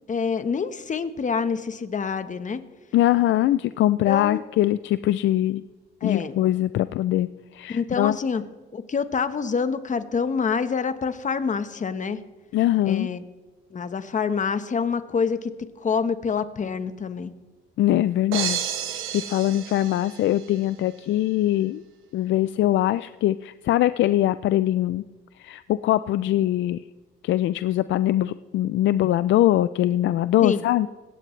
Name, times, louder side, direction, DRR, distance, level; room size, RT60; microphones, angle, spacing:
voice 1, 0.1-2.6 4.1-4.4 6.0-6.4 7.7-8.4 8.7-12.2 12.8-13.2 13.7-17.3 30.4-30.6, left 5 dB, 40° left, 11 dB, 1.1 m, -26 dB
voice 2, 2.9-5.6 6.0-7.3 7.5-8.2 12.5-13.1 17.8-21.8 22.1-25.0 25.4-26.8 27.2-30.9, left 13 dB, 70° left, 14 dB, 0.4 m, -22 dB
sound 1, 18.3-20.6, right 9 dB, 90° right, 1.4 m, -31 dB
20.0 x 17.0 x 3.2 m, 1.3 s
cardioid pair, 90°, 20 cm